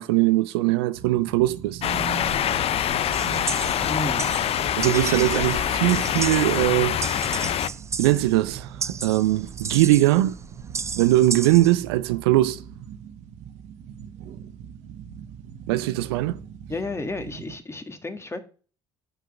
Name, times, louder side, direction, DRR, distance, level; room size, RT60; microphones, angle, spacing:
voice 1, 0.0-1.8 4.8-7.0 8.0-10.4 11.0-12.6 15.7-16.4, right 16 dB, 85° right, 0.4 m, -21 dB
sound 1, 0.9-17.6, right 8 dB, 70° right, 1.1 m, -41 dB
sound 2, 1.8-7.7, left 10 dB, 50° left, 0.5 m, -25 dB
sound 3, 3.1-11.8, right 5 dB, 25° right, 0.4 m, -34 dB
voice 2, 3.9-4.2 16.7-18.4, left 2 dB, 20° left, 1.6 m, -31 dB
5.9 x 5.3 x 5.9 m
hypercardioid pair, 60°, 13 cm